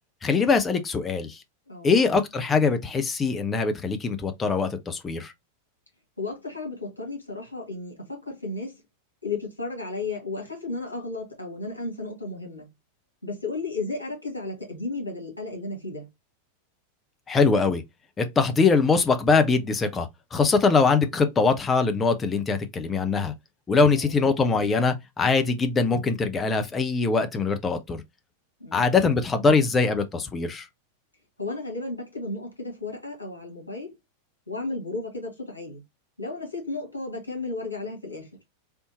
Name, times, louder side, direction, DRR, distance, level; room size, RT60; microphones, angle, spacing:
voice 1, 0.2-1.4 1.8-5.3 17.3-17.8 18.2-23.3 23.7-28.0 28.7-30.7, left 4 dB, 20° left, 0.6 m, -22 dB
voice 2, 6.2-8.8 9.2-12.7 13.2-16.1 23.9-24.2 28.6-28.9 31.4-34.0 34.5-35.8 36.2-38.3, left 3 dB, 80° left, 1.7 m, -34 dB
3.5 x 2.7 x 2.8 m
figure-of-eight pair, 90°, 0 cm